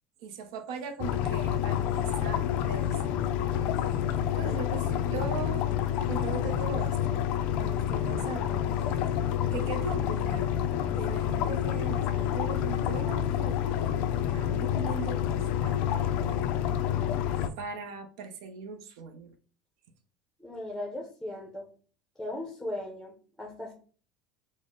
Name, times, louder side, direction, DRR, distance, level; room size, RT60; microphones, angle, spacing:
voice 1, 0.2-3.2 3.5-3.6 4.4-5.7 6.0-7.3 7.6-8.9 9.5-10.5 10.9-16.4 17.6-19.3, right 6 dB, 80° right, 7 dB, 0.6 m, -40 dB
sound 1, 1.0-17.5, left 10 dB, 50° left, 0.3 m, -28 dB
voice 2, 20.4-21.7 22.2-23.7, left 1 dB, ahead, 0 dB, 0.6 m, -38 dB
4.0 x 2.0 x 3.6 m, 0.41 s
cardioid pair, 165°, 3 cm